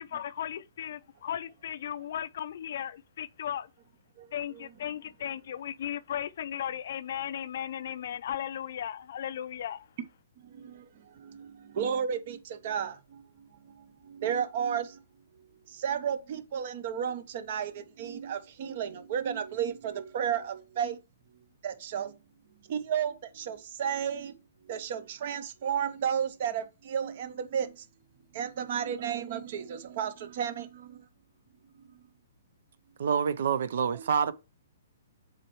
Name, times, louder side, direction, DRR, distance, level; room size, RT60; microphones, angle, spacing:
voice 1, 0.0-3.7 4.3-9.9, left 10 dB, 60° left, 0.4 m, -36 dB
voice 2, 10.4-15.0 15.7-21.0 21.6-22.1 22.7-24.4 24.6-27.9 28.3-31.1 31.9-32.0 33.9-34.0, right 8 dB, 50° right, 0.9 m, -33 dB
voice 3, 33.0-34.3, right 7 dB, 65° right, 0.6 m, -27 dB
7.4 x 4.4 x 3.1 m
hypercardioid pair, 150°, 0 cm